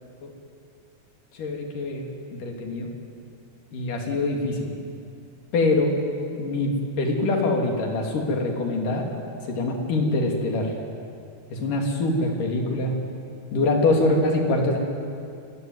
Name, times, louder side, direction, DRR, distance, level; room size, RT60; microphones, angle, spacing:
voice 1, 1.3-2.9 3.7-4.7 5.5-5.9 6.4-9.2 9.4-10.7 11.5-12.9 13.5-14.8, left 2 dB, 85° left, 2 dB, 4.5 m, -24 dB
27.5 x 20.5 x 9.5 m, 2.5 s
omnidirectional pair, 3.6 m